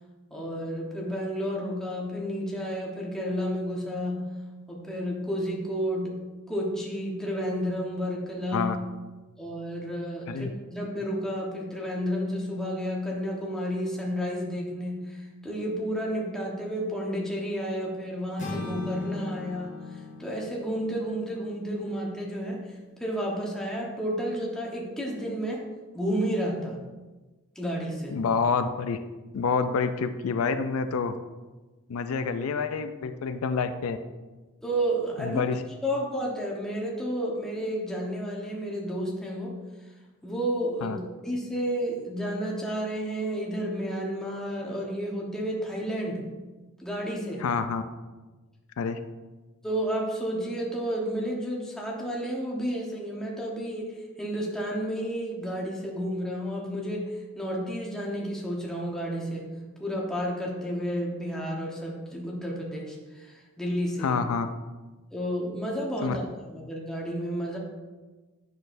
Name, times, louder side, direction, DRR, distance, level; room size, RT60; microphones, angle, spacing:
voice 1, 0.3-4.3 4.7-6.2 6.5-8.7 9.4-25.7 25.9-26.8 27.5-28.2 34.6-35.4 35.8-39.6 40.2-46.3 46.8-47.5 49.6-59.5 59.8-64.2 65.1-67.6, equal, 5° left, -3 dB, 1.1 m, -31 dB
sound 1, 18.4-22.4, left 2 dB, 35° left, 1.3 m, -40 dB
voice 2, 28.1-29.0 29.3-31.2 31.9-34.0 35.2-35.6 40.8-41.0 47.4-47.8 48.8-49.0 64.0-64.5 66.0-66.2, left 5 dB, 75° left, 9 dB, 0.4 m, -27 dB
8.7 x 6.2 x 2.6 m, 1.2 s
head